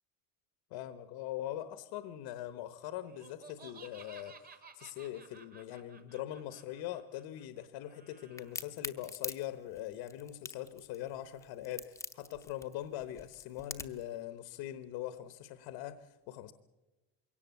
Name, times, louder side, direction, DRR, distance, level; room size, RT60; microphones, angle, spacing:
voice 1, 0.7-16.5, left 12 dB, 70° left, 12 dB, 1.1 m, -42 dB
Laughter, 3.1-8.7, right 5 dB, 20° right, 1.2 m, -56 dB
Crack, 8.4-14.1, left 3 dB, 5° left, 0.7 m, -43 dB
22.5 x 17.5 x 8.1 m, 1.1 s
cardioid pair, 165°, 44 cm